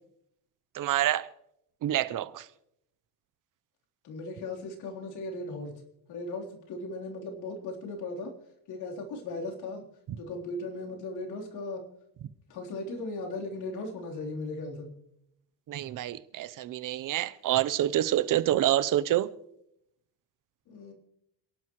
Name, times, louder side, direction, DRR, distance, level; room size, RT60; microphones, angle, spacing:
voice 1, 0.7-1.3 1.8-2.4 15.7-19.3, right 13 dB, 55° right, 0.8 m, -27 dB
voice 2, 4.0-5.8 6.1-8.3 8.7-9.8 10.2-11.8 12.5-15.0 20.7-20.9, left 2 dB, 75° left, 3.7 m, -37 dB
27.5 x 11.5 x 3.1 m
cardioid pair, 140°, 39 cm